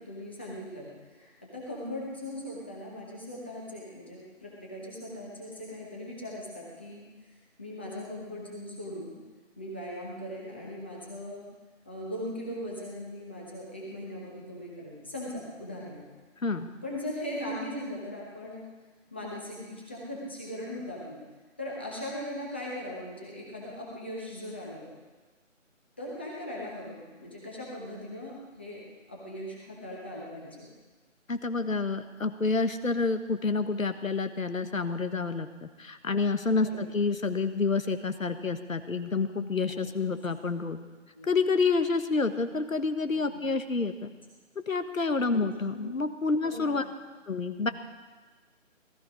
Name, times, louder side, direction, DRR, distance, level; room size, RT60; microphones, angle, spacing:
voice 1, 0.1-7.0 7.6-9.1 9.6-11.4 11.8-16.1 16.8-18.6 19.1-21.2 21.6-24.9 26.0-28.8 29.1-30.7 36.6-36.9 39.7-39.9 41.1-41.3 43.1-43.4 45.2-45.4 45.7-46.0 46.4-46.8, left 1 dB, 10° left, -4 dB, 1.0 m, -39 dB
voice 2, 31.3-40.8 41.3-44.1 44.6-46.8 47.3-47.7, left 4 dB, 85° left, 9 dB, 1.4 m, -28 dB
18.5 x 13.5 x 5.0 m, 1.3 s
figure-of-eight pair, 165°, 39 cm